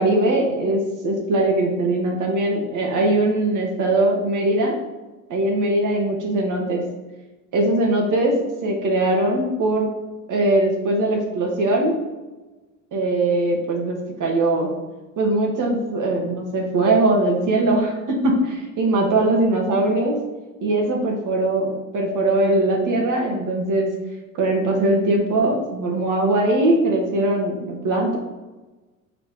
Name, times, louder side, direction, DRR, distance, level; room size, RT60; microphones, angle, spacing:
voice 1, 0.0-4.8 5.3-6.8 7.5-8.4 8.6-9.9 10.3-12.0 12.9-14.7 15.2-20.2 20.6-23.9 24.3-28.2, right 2 dB, 45° right, 1 dB, 2.0 m, -21 dB
5.9 x 3.9 x 4.9 m, 1.1 s
hypercardioid pair, 75°, 42 cm